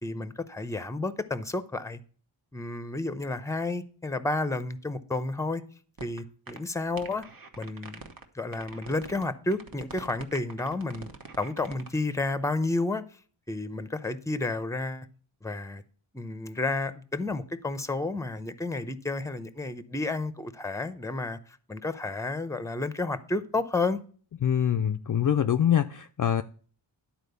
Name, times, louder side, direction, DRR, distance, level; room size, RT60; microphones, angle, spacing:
voice 1, 0.0-2.0 2.5-5.6 6.0-7.3 7.6-8.0 8.3-11.1 11.4-13.0 13.5-15.1 15.4-15.8 16.1-24.0, left 2 dB, 5° left, 0.6 m, -31 dB
sound 1, 6.0-6.2 6.5-6.6 7.0-8.2 8.5-9.2 9.5-12.0, right 4 dB, 45° right, 1.2 m, -44 dB
voice 2, 24.4-26.4, left 9 dB, 45° left, 0.4 m, -24 dB
11.5 x 4.4 x 6.8 m
wide cardioid pair, 115°, 47 cm